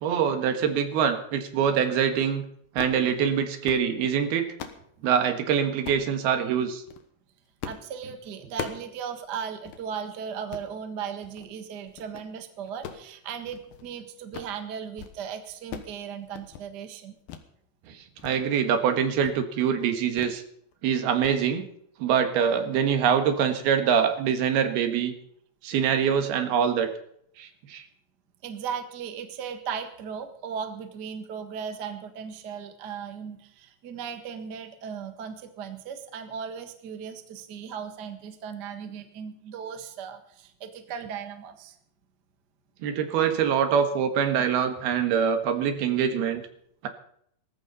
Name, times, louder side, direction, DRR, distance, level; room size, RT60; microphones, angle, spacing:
voice 1, 0.0-2.4 2.8-4.5 5.0-6.8 17.9-18.0 18.2-20.4 20.8-21.7 22.0-25.1 25.6-26.9 27.4-27.9 42.8-46.4, right 7 dB, 85° right, 7 dB, 3.5 m, -24 dB
sound 1, 2.6-3.0 3.5-3.9 4.3-4.9 5.8-6.1 6.7-7.0 7.6-7.9 8.2-8.9 9.3-9.4 9.7-9.8 10.3-10.7 11.2-11.5 11.9-12.3 12.7-13.9 14.2-14.6 14.9-15.2 15.4-16.0 16.2-16.7 17.3-17.5 17.9-18.3 18.7-18.8 19.2-19.4 20.2-20.4 20.7-20.9 21.2-21.4, left 8 dB, 75° left, 3.0 m, -40 dB
voice 2, 7.6-17.1 28.4-41.7, right 7 dB, 50° right, 7 dB, 1.2 m, -37 dB
19.5 x 15.0 x 4.1 m, 0.68 s
omnidirectional pair, 4.4 m